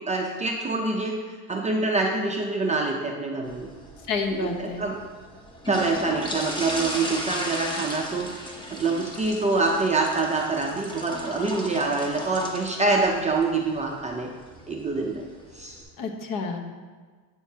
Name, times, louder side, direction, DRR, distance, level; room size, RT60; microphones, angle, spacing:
voice 1, 0.0-3.7 4.4-4.9 5.7-8.4 8.7-14.3 14.7-15.2 15.5-15.8, right 3 dB, 15° right, -1 dB, 0.5 m, -26 dB
sound 1, 3.4-15.8, equal, 10° left, 0.9 m, -36 dB
voice 2, 4.1-4.8 16.0-16.6, left 4 dB, 45° left, 4 dB, 1.0 m, -29 dB
8.8 x 6.3 x 2.8 m, 1.5 s
cardioid pair, 145°, 44 cm